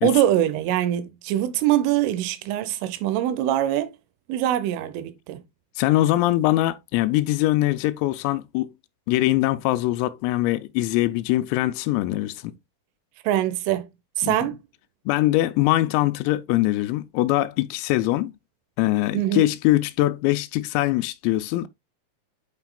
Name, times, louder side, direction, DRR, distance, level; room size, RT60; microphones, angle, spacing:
voice 1, 0.0-3.9 4.3-5.4 13.2-13.9 14.2-14.6 19.1-19.5, right 12 dB, 80° right, 3.1 m, -23 dB
voice 2, 5.8-8.7 9.1-12.5 14.2-14.5 15.1-18.3 18.8-21.7, left 16 dB, 85° left, 3.2 m, -22 dB
8.9 x 5.8 x 2.2 m
omnidirectional pair, 6.0 m